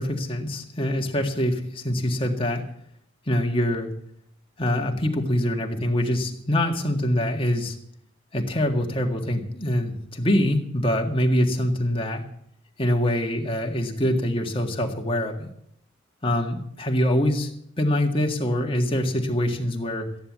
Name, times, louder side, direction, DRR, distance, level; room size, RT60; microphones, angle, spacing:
voice 1, 0.0-2.7 3.3-3.9 4.6-7.8 8.3-12.2 12.8-15.5 16.2-20.1, left 1 dB, 25° left, 2 dB, 1.8 m, -24 dB
14.5 x 10.0 x 7.4 m, 0.70 s
head